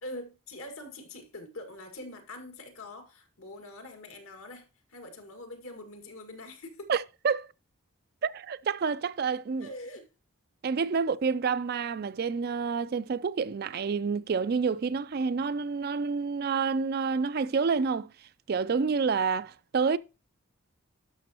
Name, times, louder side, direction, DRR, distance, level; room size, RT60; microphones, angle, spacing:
voice 1, 0.0-6.9 9.6-10.1, left 1 dB, 80° left, 2.0 m, -44 dB
voice 2, 6.9-7.5 8.2-9.7 10.6-18.1 18.5-20.0, right 5 dB, 45° right, 0.3 m, -28 dB
12.0 x 6.3 x 2.9 m
head